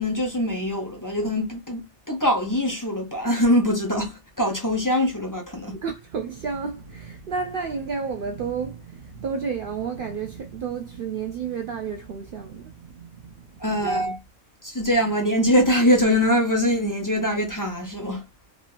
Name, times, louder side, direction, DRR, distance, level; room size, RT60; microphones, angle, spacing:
voice 1, 0.0-5.8 13.6-14.1 14.6-18.3, equal, 15° left, 0.8 m, -23 dB
voice 2, 5.7-14.2, right 5 dB, 80° right, 0.4 m, -31 dB
3.4 x 2.8 x 2.4 m
omnidirectional pair, 1.5 m